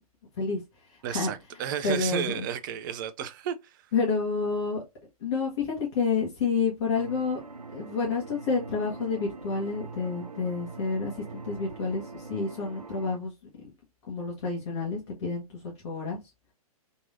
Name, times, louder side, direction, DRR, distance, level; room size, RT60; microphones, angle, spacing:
voice 1, 1.0-3.8, right 9 dB, 35° right, 0.4 m, -33 dB
voice 2, 1.8-2.4 3.9-4.8 5.2-7.4 7.7-13.3 14.1-16.2, left 4 dB, 45° left, 1.3 m, -29 dB
sound 1, 6.9-13.2, right 4 dB, 80° right, 0.6 m, -43 dB
3.9 x 2.9 x 2.6 m
figure-of-eight pair, 115°, 20 cm